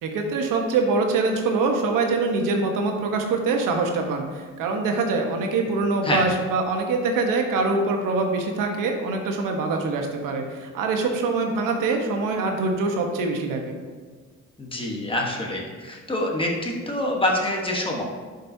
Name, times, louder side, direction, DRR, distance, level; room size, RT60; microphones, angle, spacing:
voice 1, 0.0-13.8, right 3 dB, 85° right, 3 dB, 1.1 m, -24 dB
voice 2, 14.6-18.0, left 1 dB, 15° left, -1 dB, 1.2 m, -26 dB
11.5 x 5.3 x 2.7 m, 1.5 s
cardioid pair, 115°, 31 cm